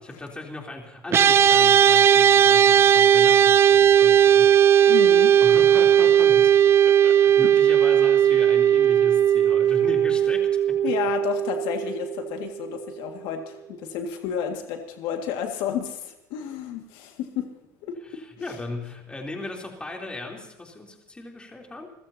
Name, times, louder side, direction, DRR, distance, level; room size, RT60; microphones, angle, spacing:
voice 1, 0.2-4.6 5.0-10.8 18.0-21.9, left 2 dB, 10° left, 1 dB, 3.4 m, -37 dB
sound 1, 1.1-12.6, right 9 dB, 30° right, 0.5 m, -17 dB
voice 2, 4.9-5.3 10.8-17.5 17.8-18.6, left 8 dB, 70° left, 4 dB, 2.0 m, -31 dB
29.0 x 15.0 x 2.8 m, 1.0 s
cardioid pair, 125°, 8 cm